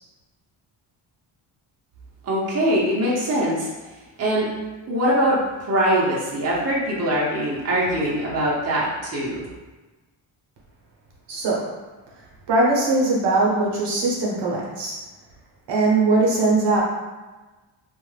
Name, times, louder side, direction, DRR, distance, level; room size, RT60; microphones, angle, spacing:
voice 1, 2.2-3.7 4.2-4.5 4.9-5.4 5.7-9.4, equal, 30° right, -5 dB, 0.7 m, -22 dB
voice 2, 11.3-11.6 12.5-14.9 15.7-16.8, right 2 dB, 60° right, -4 dB, 0.9 m, -20 dB
2.4 x 2.3 x 3.2 m, 1.2 s
cardioid pair, 100°, 48 cm